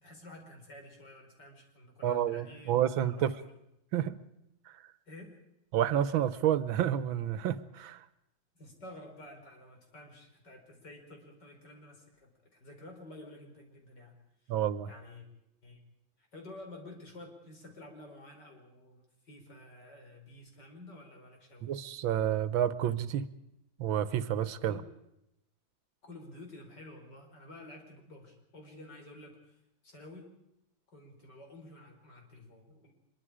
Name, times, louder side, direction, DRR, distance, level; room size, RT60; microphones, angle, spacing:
voice 1, 0.0-3.4 5.1-5.4 8.5-14.2 14.4-14.6 14.9-15.3 15.6-15.8 16.2-21.7 24.7-24.9 26.0-30.3 30.9-32.9, left 1 dB, 60° left, 2 dB, 5.1 m, -51 dB
voice 2, 2.0-3.3 3.9-4.2 5.7-8.0 14.5-14.9 21.6-23.3 23.8-24.8, right 10 dB, 85° right, 14 dB, 1.8 m, -29 dB
24.5 x 22.5 x 5.0 m, 0.83 s
omnidirectional pair, 2.1 m